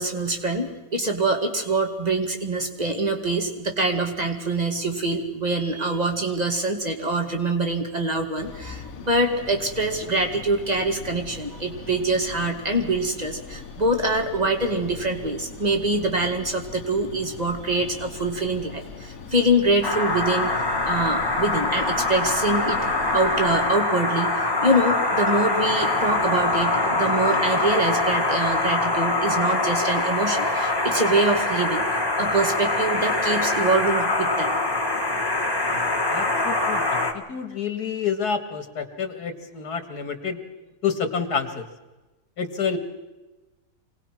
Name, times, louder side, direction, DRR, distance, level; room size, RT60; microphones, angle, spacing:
voice 1, 0.0-20.5 20.8-22.8 23.1-31.8 32.2-34.6, right 2 dB, 25° right, 4 dB, 2.4 m, -24 dB
sound 1, 8.4-23.7, left 5 dB, 60° left, 1.6 m, -40 dB
sound 2, 19.8-37.1, left 2 dB, 15° left, 1.7 m, -24 dB
sound 3, 25.6-29.7, right 3 dB, 70° right, 2.3 m, -41 dB
voice 2, 35.7-40.4 40.8-41.6 42.4-42.8, left 6 dB, 85° left, 8 dB, 2.4 m, -29 dB
25.5 x 19.0 x 6.0 m, 1.1 s
omnidirectional pair, 1.6 m